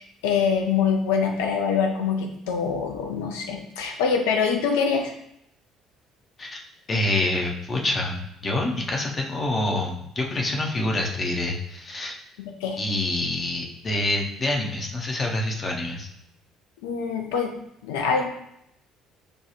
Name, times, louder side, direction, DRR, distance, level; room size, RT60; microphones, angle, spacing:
voice 1, 0.0-5.1 12.6-12.8 16.8-17.6 17.8-18.3, left 6 dB, 70° left, 3 dB, 0.5 m, -24 dB
voice 2, 6.9-12.2 12.8-16.1, left 2 dB, 35° left, 1 dB, 0.7 m, -26 dB
5.3 x 2.3 x 2.9 m, 0.77 s
figure-of-eight pair, 50°, 0 cm